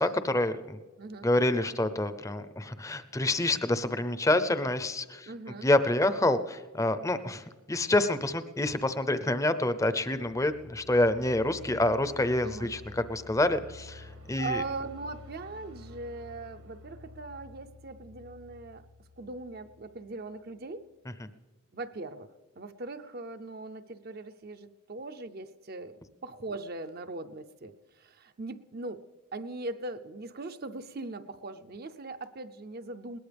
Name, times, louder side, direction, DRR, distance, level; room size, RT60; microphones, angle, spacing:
voice 1, 0.0-0.8 1.2-5.3 5.6-14.6 21.2-21.3, left 1 dB, 15° left, 11 dB, 0.6 m, -27 dB
voice 2, 1.0-1.3 5.3-5.7 12.4-12.7 14.4-18.8 19.2-20.9 21.7-22.3 22.6-25.9 26.2-29.0 29.3-33.2, right 2 dB, 45° right, 8 dB, 0.6 m, -40 dB
sound 1, 9.8-20.6, left 2 dB, 75° right, 1.7 m, -50 dB
21.0 x 18.5 x 3.4 m, 1.4 s
head